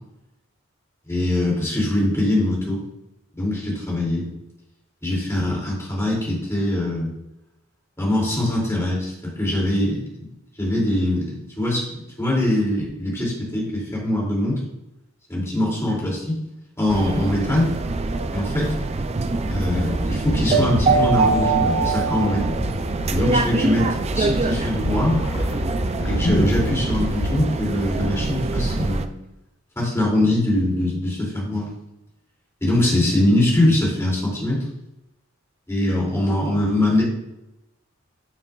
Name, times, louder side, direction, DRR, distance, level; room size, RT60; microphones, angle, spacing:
voice 1, 1.1-2.8 3.3-4.2 5.0-7.1 8.0-10.0 10.6-11.9 12.2-14.6 15.3-16.4 16.8-17.7 18.3-18.7 19.5-22.5 23.1-25.3 26.1-29.1 29.8-31.7 32.6-34.6 35.7-37.0, left 1 dB, 15° left, -4 dB, 2.8 m, -22 dB
sound 1, 16.9-29.1, right 3 dB, 30° right, 0.4 m, -24 dB
sound 2, 19.4-27.3, left 1 dB, 60° left, 1.0 m, -29 dB
10.0 x 7.0 x 2.4 m, 0.92 s
head